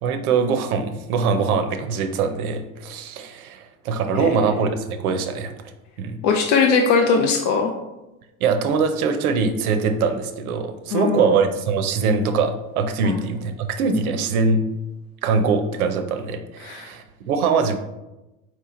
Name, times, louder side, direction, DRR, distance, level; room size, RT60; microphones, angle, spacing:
voice 1, 0.0-5.5 6.0-6.2 8.4-14.6 15.2-17.8, right 5 dB, 85° right, 7 dB, 0.7 m, -22 dB
voice 2, 6.2-7.7 10.9-11.3 13.0-13.2 16.6-16.9, left 5 dB, 45° left, 2 dB, 0.5 m, -20 dB
4.5 x 2.9 x 3.7 m, 0.99 s
hypercardioid pair, 95°, 42 cm